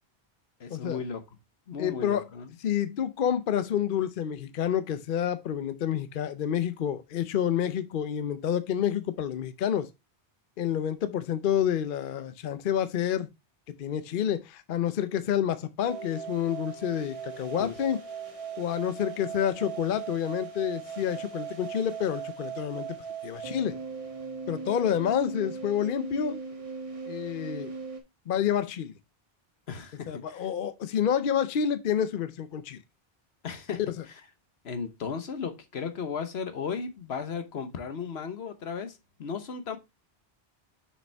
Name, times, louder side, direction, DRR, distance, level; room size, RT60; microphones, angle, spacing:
voice 1, 0.6-1.2 1.7-2.5 17.6-17.7 29.7-30.5 33.4-33.8 34.6-39.8, left 6 dB, 80° left, 1.2 m, -35 dB
voice 2, 1.8-2.3 2.6-9.9 10.6-13.3 13.8-18.0 18.6-23.0 23.2-23.7 24.5-26.4 27.1-27.7 28.3-29.0 30.1-32.8, left 9 dB, 60° left, 0.7 m, -28 dB
sound 1, 15.8-28.0, right 6 dB, 35° right, 1.2 m, -39 dB
6.7 x 5.2 x 3.4 m
omnidirectional pair, 1.1 m